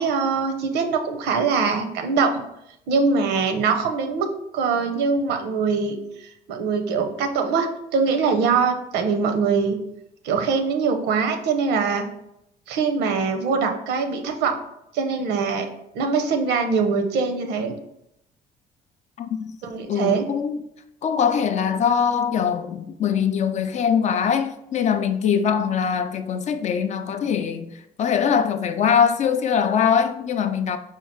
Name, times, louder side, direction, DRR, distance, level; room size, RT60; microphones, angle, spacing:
voice 1, 0.0-2.4 2.9-4.3 4.5-9.8 10.2-12.1 12.7-14.5 14.9-15.7 15.9-17.7 19.6-20.3, right 5 dB, 85° right, 0.7 m, -23 dB
voice 2, 19.2-19.6 19.9-20.6 21.0-30.8, left 7 dB, 45° left, 0.4 m, -22 dB
4.4 x 2.4 x 4.4 m
cardioid pair, 110°, 17 cm